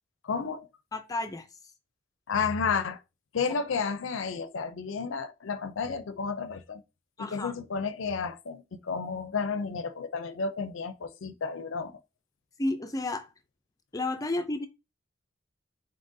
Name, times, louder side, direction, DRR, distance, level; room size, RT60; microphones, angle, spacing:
voice 1, 0.2-0.7 2.3-3.0 3.3-6.8 7.2-11.9, left 5 dB, 70° left, 0.5 m, -32 dB
voice 2, 0.9-1.5 7.2-7.5 12.6-13.3 13.9-14.7, left 2 dB, 20° left, 0.4 m, -31 dB
4.0 x 3.7 x 2.6 m
head